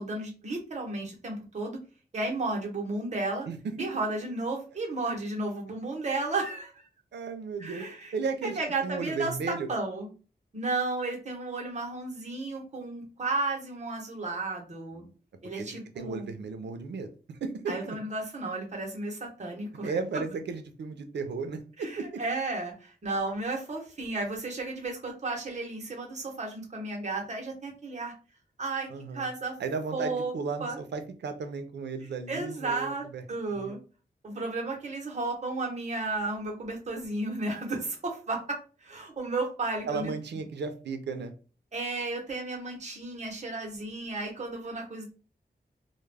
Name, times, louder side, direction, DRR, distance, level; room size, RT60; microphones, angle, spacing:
voice 1, 0.0-1.8 2.1-3.5 3.8-6.9 7.6-8.1 8.4-10.1 10.5-15.0 15.4-16.4 17.7-20.0 21.8-28.1 28.6-28.9 29.1-29.6 29.9-30.3 30.6-30.8 32.0-33.8 34.2-40.1 41.7-45.1, right 2 dB, 40° right, 1 dB, 0.8 m, -33 dB
voice 2, 3.5-3.9 7.1-9.7 15.0-15.1 15.6-17.1 17.4-18.0 19.8-22.2 28.9-29.3 29.6-33.2 33.5-33.7 39.9-41.3, right 4 dB, 85° right, 7 dB, 0.5 m, -35 dB
2.2 x 2.1 x 3.2 m, 0.35 s
wide cardioid pair, 135°, 17 cm